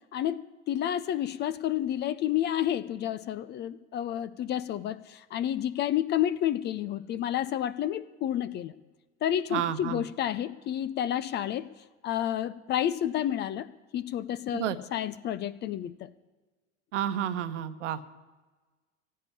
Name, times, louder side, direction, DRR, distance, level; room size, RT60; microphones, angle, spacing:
voice 1, 0.1-8.7 9.2-11.7 12.0-13.7 13.9-16.1, left 11 dB, 25° left, 17 dB, 0.5 m, -30 dB
voice 2, 9.5-10.0 14.5-14.8 16.9-18.0, right 10 dB, 65° right, 12 dB, 1.1 m, -30 dB
16.0 x 6.7 x 9.9 m, 1.3 s
figure-of-eight pair, 80°, 39 cm